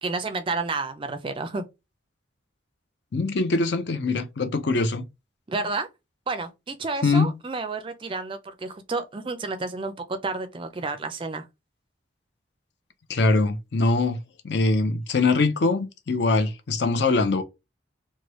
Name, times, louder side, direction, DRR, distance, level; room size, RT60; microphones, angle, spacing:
voice 1, 0.0-1.7 5.5-5.9 6.3-11.5, right 3 dB, 25° right, 0.4 m, -30 dB
voice 2, 3.1-5.0 7.0-7.3 13.1-14.2 14.4-17.4, left 3 dB, 60° left, 0.5 m, -22 dB
3.1 x 2.2 x 3.0 m
head